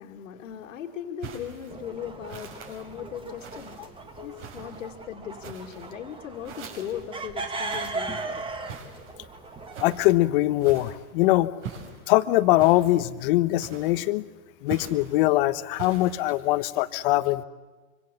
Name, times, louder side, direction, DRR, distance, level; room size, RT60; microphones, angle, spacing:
voice 1, 0.0-3.8 4.2-8.6, left 9 dB, 65° left, 2 dB, 2.6 m, -38 dB
sound 1, 1.2-1.7 2.3-2.8 3.4-3.9 4.4-4.9 5.4-5.9 6.4-7.1 7.7-8.1 8.7-9.2 9.7-10.1 10.6-11.1 11.6-12.0 12.6-13.0 13.6-14.1 14.7-15.2 15.8-16.4, right 7 dB, 60° right, 6.7 m, -42 dB
sound 2, 1.7-10.2, right 3 dB, 10° right, 1.9 m, -38 dB
voice 2, 9.8-11.5 12.1-14.2 14.6-17.4, left 17 dB, 40° left, 13 dB, 1.3 m, -22 dB
26.0 x 25.0 x 7.2 m, 1.3 s
hypercardioid pair, 135°, 41 cm